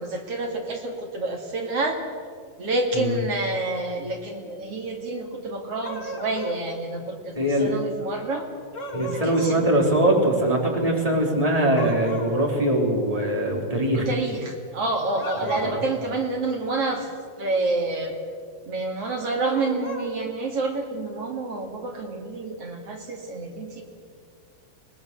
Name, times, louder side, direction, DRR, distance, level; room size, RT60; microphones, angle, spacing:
voice 1, 0.0-2.0 2.6-8.5 9.0-9.6 13.9-17.1 17.4-18.1 18.6-23.8, right 2 dB, 45° right, 2 dB, 2.3 m, -28 dB
sound 1, 5.8-6.6 8.7-9.6 11.7-12.4 15.1-15.9 19.5-20.1, left 1 dB, 55° left, 0.8 m, -34 dB
voice 2, 7.3-7.7 8.9-14.1 15.4-15.8, right 1 dB, 10° right, -1 dB, 2.8 m, -22 dB
25.0 x 19.0 x 6.9 m, 2.1 s
omnidirectional pair, 5.3 m